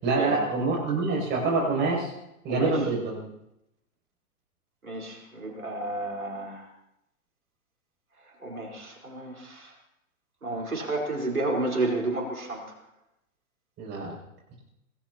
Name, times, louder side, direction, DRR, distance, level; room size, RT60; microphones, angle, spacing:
voice 1, 0.0-2.1 2.4-3.2 13.8-14.1, right 3 dB, 25° right, -2 dB, 6.7 m, -26 dB
voice 2, 4.8-6.6 8.4-9.7 10.4-12.6, right 2 dB, 80° right, 0 dB, 4.4 m, -31 dB
26.0 x 18.5 x 2.9 m, 0.85 s
figure-of-eight pair, 110°, 42 cm